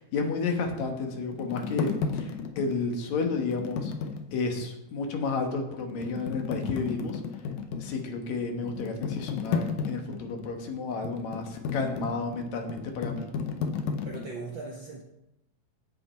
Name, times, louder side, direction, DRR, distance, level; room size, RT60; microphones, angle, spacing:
voice 1, 0.0-3.9 4.3-7.2 7.8-13.3, left 4 dB, 70° left, 3 dB, 2.5 m, -31 dB
sound 1, 0.7-4.7 5.2-5.3 5.8-14.3, left 5 dB, 85° left, 2.4 m, -34 dB
voice 2, 14.0-15.0, right 3 dB, 55° right, -1 dB, 1.4 m, -39 dB
16.0 x 5.5 x 4.4 m, 0.85 s
omnidirectional pair, 3.5 m